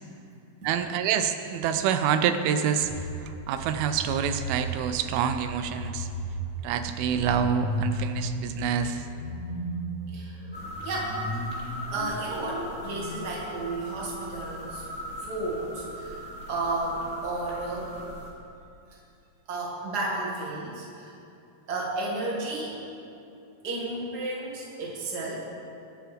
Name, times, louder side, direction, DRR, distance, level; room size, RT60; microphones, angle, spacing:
voice 1, 0.6-6.1 6.6-9.0, right 8 dB, 85° right, 9 dB, 2.5 m, -27 dB
sound 1, 2.8-13.2, equal, 80° left, 0.7 m, -35 dB
voice 2, 10.1-10.4 10.8-11.2 11.9-14.9 15.2-16.2 16.5-17.9 18.9-19.0 19.5-21.2 21.7-22.8 23.6-25.4, right 2 dB, 35° right, -4 dB, 1.9 m, -32 dB
sound 2, 10.5-18.3, equal, 5° left, 1.7 m, -40 dB
23.0 x 7.9 x 3.5 m, 2.6 s
omnidirectional pair, 4.3 m